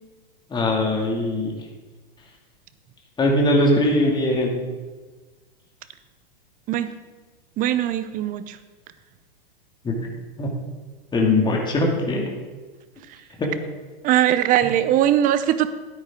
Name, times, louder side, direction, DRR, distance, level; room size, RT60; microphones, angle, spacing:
voice 1, 0.5-1.5 3.2-4.6 9.8-10.0 10.4-10.5 11.1-12.3 13.4-13.5, left 1 dB, 15° left, -1 dB, 2.3 m, -21 dB
voice 2, 7.6-8.6 14.0-15.7, right 11 dB, 30° right, 13 dB, 0.7 m, -20 dB
13.5 x 9.6 x 3.7 m, 1.3 s
hypercardioid pair, 115°, 29 cm